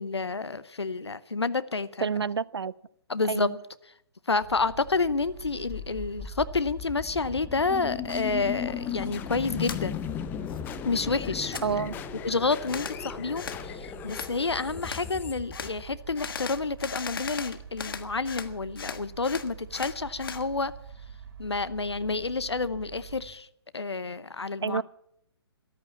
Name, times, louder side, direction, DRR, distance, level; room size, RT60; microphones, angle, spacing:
voice 1, 0.0-2.1 3.1-3.6 4.3-10.0 10.8-11.6 12.2-20.7 21.4-23.5 23.7-24.8, left 4 dB, 80° left, 0.8 m, -29 dB
voice 2, 2.0-2.7 3.3-3.6 11.6-12.0 24.6-24.8, right 5 dB, 70° right, 0.6 m, -29 dB
sound 1, 4.4-23.3, right 7 dB, 50° right, 5.3 m, -45 dB
sound 2, 5.4-16.4, left 10 dB, 15° left, 0.7 m, -37 dB
sound 3, 9.6-9.8 10.2-11.0 11.3-11.7 12.7-13.0 13.4-13.6 14.1-14.3 14.8-15.1 15.5-15.7 16.2-18.5 18.8-20.4, left 6 dB, 55° left, 1.4 m, -37 dB
14.0 x 12.5 x 7.0 m
figure-of-eight pair, 130°, 14 cm